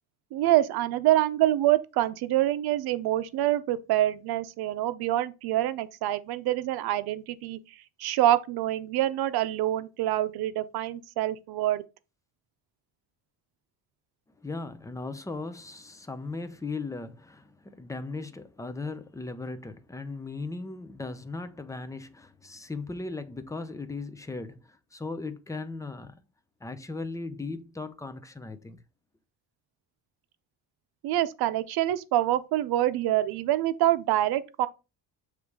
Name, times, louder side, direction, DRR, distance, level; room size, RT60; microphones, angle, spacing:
voice 1, 0.3-11.8 31.0-34.7, right 14 dB, 75° right, 0.7 m, -26 dB
voice 2, 14.4-26.2 26.6-28.8, left 3 dB, 10° left, 0.6 m, -37 dB
7.0 x 3.2 x 4.7 m
cardioid pair, 135°, 38 cm